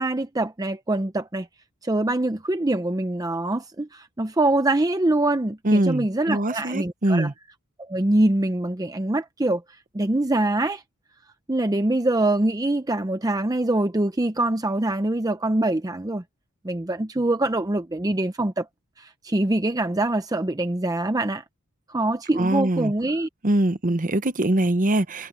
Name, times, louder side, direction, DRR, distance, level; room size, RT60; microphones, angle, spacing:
voice 1, 0.0-1.5 1.8-7.3 7.8-9.6 9.9-10.8 11.5-16.2 16.6-18.7 19.0-21.4 21.9-23.3, right 2 dB, 15° right, 0.6 m, -24 dB
voice 2, 5.6-7.3 22.4-22.9 23.4-25.3, right 1 dB, 35° right, 1.0 m, -23 dB
head